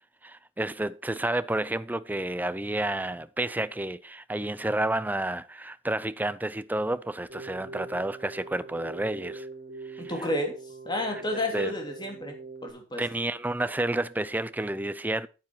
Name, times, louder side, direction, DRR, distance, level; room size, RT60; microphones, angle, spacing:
voice 1, 0.2-9.5 9.9-10.0 11.1-11.7 13.0-15.3, right 1 dB, 10° right, 0.5 m, -30 dB
Keyboard (musical), 7.3-12.7, right 3 dB, 45° right, 2.8 m, -42 dB
voice 2, 10.0-10.6 10.8-13.0, left 1 dB, 25° left, 3.0 m, -31 dB
9.8 x 9.2 x 4.5 m
head